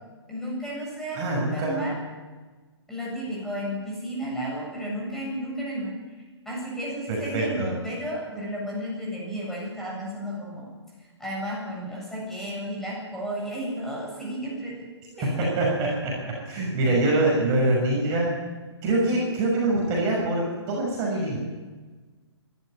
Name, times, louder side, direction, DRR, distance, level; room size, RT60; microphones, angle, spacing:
voice 1, 0.3-2.0 2.9-5.9 6.4-10.7 11.2-14.9 15.2-15.5, equal, ahead, -5 dB, 7.5 m, -33 dB
voice 2, 1.1-1.9 7.1-7.7 15.4-18.4 18.8-21.4, right 2 dB, 25° right, -3 dB, 5.8 m, -24 dB
24.0 x 12.5 x 9.6 m, 1.3 s
figure-of-eight pair, 125°, 15 cm